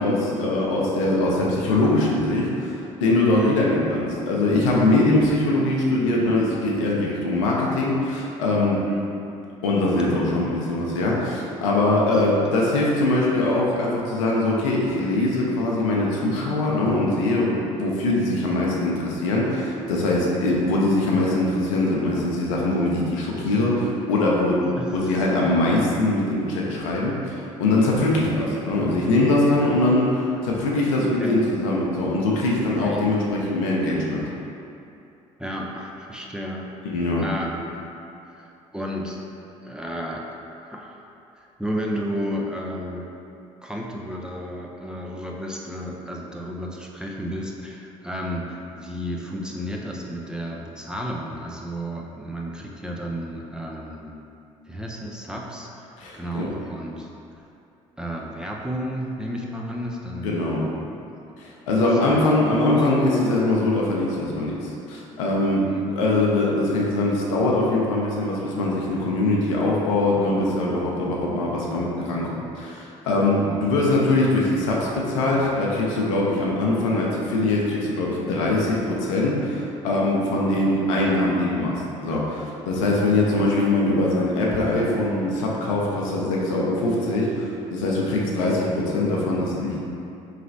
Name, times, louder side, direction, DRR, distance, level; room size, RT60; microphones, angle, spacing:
voice 1, 0.0-8.8 9.6-34.2 36.8-37.2 56.0-56.5 60.2-60.6 61.4-65.6 66.0-89.8, left 2 dB, 75° left, -4 dB, 0.7 m, -22 dB
voice 2, 3.3-3.6 8.8-9.0 10.0-10.6 20.2-20.5 24.8-25.3 25.6-25.8 28.2-28.4 29.6-29.8 31.0-31.4 32.8-33.2 35.4-37.8 38.3-39.2 39.6-40.3 40.7-41.0 41.4-43.1 43.6-54.1 54.7-55.9 56.1-57.1 58.0-60.8 62.1-62.8 65.6-65.8 73.4-73.6 75.3-75.5 80.9-81.2, equal, 5° right, -2 dB, 0.5 m, -33 dB
4.8 x 3.2 x 2.6 m, 2.7 s
hypercardioid pair, 55°, 17 cm